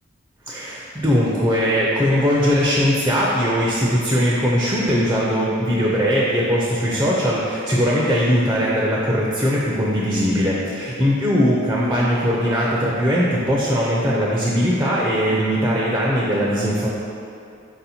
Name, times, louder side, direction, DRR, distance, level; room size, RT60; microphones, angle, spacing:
voice 1, 0.5-16.9, equal, 15° right, -5 dB, 0.4 m, -20 dB
4.3 x 2.7 x 4.2 m, 2.5 s
head